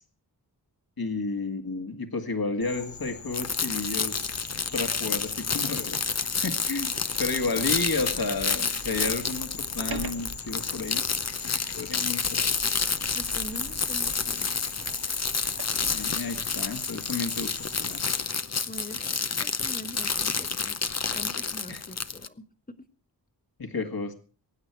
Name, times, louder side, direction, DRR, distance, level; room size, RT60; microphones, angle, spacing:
voice 1, 1.0-4.4 4.7-6.2 6.4-6.9 7.2-11.0 11.4-12.5 15.9-18.1 21.7-21.8 23.6-24.1, left 3 dB, 55° left, 5 dB, 2.1 m, -32 dB
Insect, 2.6-18.0, left 4 dB, 85° left, 3.0 m, -43 dB
sound 1, 3.3-22.3, left 5 dB, 40° left, 0.8 m, -29 dB
Sliding door, 6.8-16.7, right 4 dB, 60° right, 1.8 m, -45 dB
voice 2, 13.1-14.7 18.7-20.8 21.1-22.8, left 1 dB, 20° left, 8 dB, 1.8 m, -43 dB
23.0 x 9.1 x 4.8 m, 0.39 s
cardioid pair, 50°, 42 cm